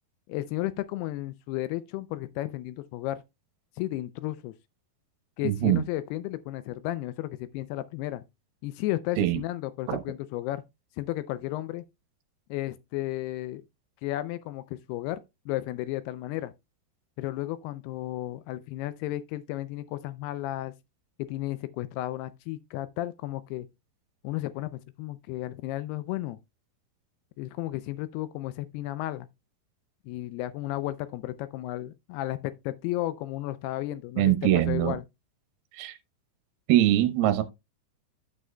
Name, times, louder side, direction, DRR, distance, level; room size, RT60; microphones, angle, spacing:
voice 1, 0.3-3.2 3.8-4.5 5.4-8.2 8.6-10.6 11.0-11.8 12.5-13.6 14.0-16.5 17.2-20.7 21.2-23.7 24.2-26.4 27.4-29.3 30.1-32.4 32.6-35.0, left 15 dB, 90° left, 2.3 m, -33 dB
voice 2, 5.4-5.8 9.2-9.4 9.9-10.0 34.2-34.9 35.7-36.0 36.7-37.4, right 13 dB, 70° right, 2.6 m, -23 dB
12.5 x 6.2 x 2.2 m
omnidirectional pair, 5.3 m